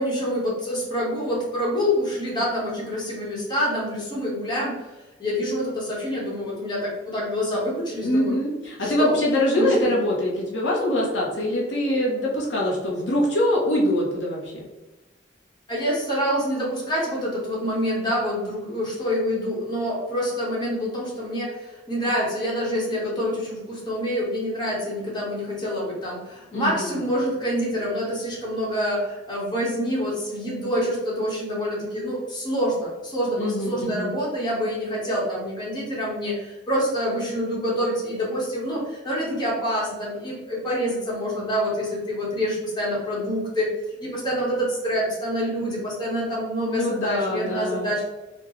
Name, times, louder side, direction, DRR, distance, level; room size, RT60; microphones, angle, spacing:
voice 1, 0.0-4.8 5.2-8.3 8.8-9.2 9.5-9.9 15.7-43.7 44.0-48.0, equal, 25° left, -5 dB, 1.3 m, -26 dB
voice 2, 8.0-14.6 26.5-26.9 33.4-34.1 46.6-47.9, left 1 dB, 85° left, -4 dB, 1.1 m, -24 dB
4.4 x 2.4 x 3.1 m, 1.1 s
head